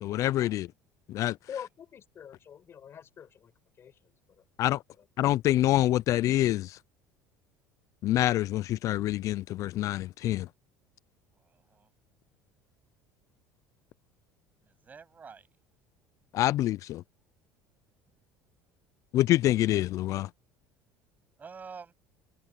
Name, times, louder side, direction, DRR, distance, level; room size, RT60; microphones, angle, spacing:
voice 1, 0.0-0.7 1.1-1.4 4.6-4.8 5.2-6.8 8.0-10.5 16.3-17.0 19.1-20.3, left 14 dB, 55° left, 0.4 m, -26 dB
voice 2, 1.5-3.5 3.8-4.0 4.4-4.5, left 8 dB, 40° left, 5.2 m, -44 dB
voice 3, 11.4-11.9 14.6-15.5 21.4-21.9, right 5 dB, 25° right, 8.0 m, -48 dB
supercardioid pair, 115°, 7 cm